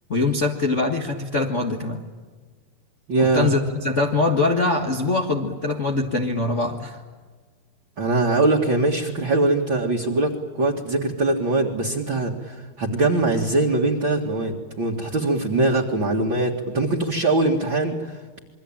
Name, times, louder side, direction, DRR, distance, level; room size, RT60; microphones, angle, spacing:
voice 1, 0.1-2.0 3.2-7.0, left 3 dB, 70° left, 2 dB, 0.6 m, -23 dB
voice 2, 3.1-3.5 8.0-18.4, right 2 dB, 40° right, -1 dB, 2.3 m, -22 dB
27.5 x 23.0 x 8.9 m, 1.4 s
omnidirectional pair, 4.4 m